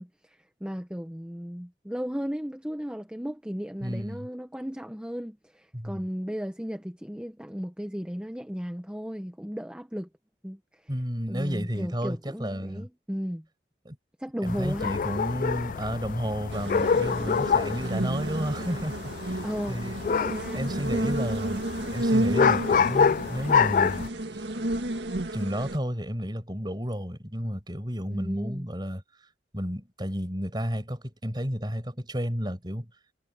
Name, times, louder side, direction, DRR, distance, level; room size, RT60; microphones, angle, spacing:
voice 1, 0.0-10.1 10.4-10.9 11.3-13.4 14.2-14.9 19.4-19.8 20.1-20.7 20.9-21.2 28.1-28.7, equal, 5° right, 0.9 m, -35 dB
voice 2, 3.8-4.3 5.7-6.0 10.9-12.9 13.9-14.0 14.4-19.4 19.7-20.0 20.5-21.6 21.9-24.1 25.3-29.0 29.5-32.9, equal, 25° right, 5.7 m, -32 dB
sound 1, 14.5-24.1, left 6 dB, 45° left, 0.3 m, -27 dB
sound 2, 16.5-25.8, right 1 dB, 80° right, 1.8 m, -31 dB
head